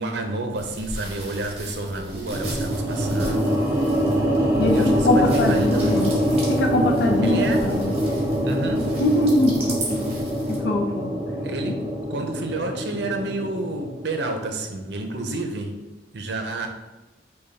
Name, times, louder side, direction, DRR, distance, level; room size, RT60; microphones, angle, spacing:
voice 1, 0.0-3.6 4.7-6.1 7.2-7.7 8.4-8.9 11.4-11.8 12.1-15.7 16.1-16.7, right 2 dB, 75° right, 5 dB, 0.6 m, -30 dB
sound 1, 0.5-10.6, right 1 dB, 35° right, 1.2 m, -37 dB
sound 2, 2.3-14.6, equal, 15° right, 0.7 m, -24 dB
voice 2, 4.6-6.1 6.5-8.0 9.0-10.1 10.5-11.1, left 1 dB, 70° left, 2 dB, 0.5 m, -22 dB
5.3 x 2.3 x 4.0 m, 1.0 s
head